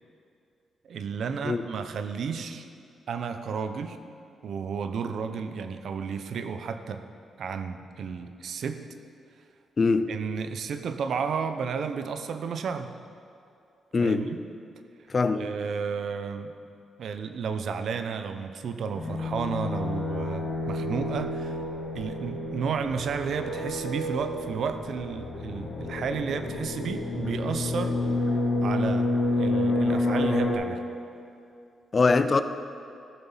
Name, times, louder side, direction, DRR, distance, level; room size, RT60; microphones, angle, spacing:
voice 1, 0.9-2.7 3.1-4.0 4.4-7.0 7.4-8.8 10.1-12.9 14.0-14.3 15.3-16.5 17.0-21.6 21.9-28.0 28.6-30.8, right 6 dB, 70° right, 9 dB, 0.7 m, -32 dB
voice 2, 9.8-10.1 13.9-14.3 15.1-15.5 31.9-32.4, left 4 dB, 40° left, 11 dB, 0.5 m, -22 dB
sound 1, 18.9-30.5, left 2 dB, 55° left, 3.2 m, -29 dB
15.0 x 6.9 x 5.6 m, 2.4 s
cardioid pair, 90°, 0 cm